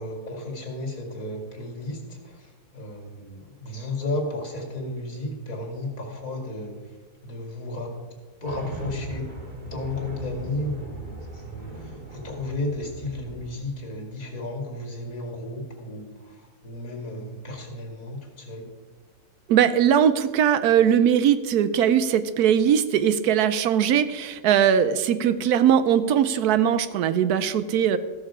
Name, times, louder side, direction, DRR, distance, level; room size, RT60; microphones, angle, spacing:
voice 1, 0.0-7.0 7.2-8.0 8.4-9.3 9.6-18.7, left 2 dB, 60° left, 1 dB, 2.6 m, -33 dB
sound 1, 8.4-13.5, right 1 dB, 30° right, 2.1 m, -39 dB
voice 2, 19.5-28.0, right 9 dB, 75° right, 13 dB, 1.1 m, -20 dB
15.0 x 6.5 x 4.9 m, 1.4 s
omnidirectional pair, 1.7 m